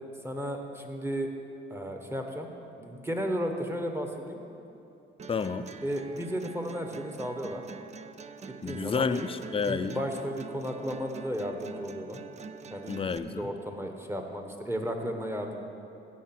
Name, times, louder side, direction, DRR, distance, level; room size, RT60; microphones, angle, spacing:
voice 1, 0.2-1.3 1.7-2.5 2.8-4.4 5.8-7.6 8.5-9.2 9.7-12.2 12.7-12.9 13.2-15.6, equal, 10° right, 4 dB, 1.3 m, -34 dB
sound 1, 5.2-13.2, right 5 dB, 35° right, 0.5 m, -45 dB
voice 2, 5.3-5.7 8.6-10.0 12.9-13.5, left 5 dB, 30° left, 11 dB, 0.5 m, -30 dB
16.0 x 5.3 x 6.0 m, 2.7 s
cardioid pair, 90°, 20 cm